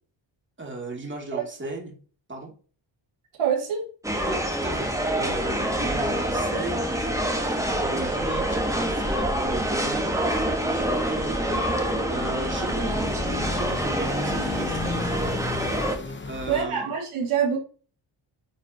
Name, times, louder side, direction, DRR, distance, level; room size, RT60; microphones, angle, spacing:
voice 1, 0.6-1.9 2.3-2.5 4.3-15.4 16.3-16.9, right 2 dB, 25° right, 0 dB, 2.6 m, -36 dB
voice 2, 3.4-3.8 16.5-17.6, right 7 dB, 90° right, -1 dB, 2.4 m, -25 dB
sound 1, 4.0-16.0, right 1 dB, 5° right, 1.4 m, -26 dB
sound 2, 10.6-16.6, left 3 dB, 25° left, 1.0 m, -35 dB
9.3 x 3.9 x 2.9 m, 0.39 s
cardioid pair, 95°, 49 cm